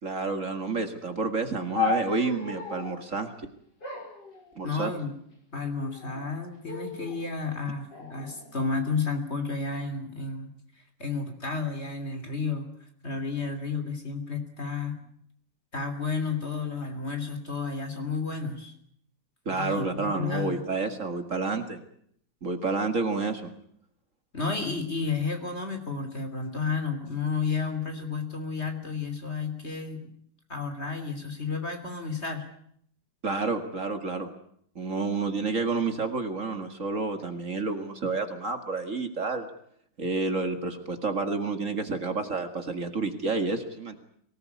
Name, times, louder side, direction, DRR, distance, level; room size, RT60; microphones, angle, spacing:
voice 1, 0.0-3.3 4.6-4.9 19.5-21.8 22.4-23.5 33.2-34.3 34.8-39.5 40.0-44.0, right 3 dB, 45° right, 7 dB, 2.3 m, -29 dB
sound 1, 1.7-3.0 3.8-5.0 5.8-6.3 6.6-7.2 7.9-8.9, left 5 dB, 75° left, 6.3 m, -34 dB
voice 2, 4.6-5.1 5.5-10.5 11.0-12.7 13.0-15.0 15.7-18.7 19.5-20.6 24.3-30.1 30.5-32.5, left 4 dB, 35° left, 7 dB, 3.4 m, -32 dB
23.5 x 19.0 x 9.6 m, 0.68 s
omnidirectional pair, 1.9 m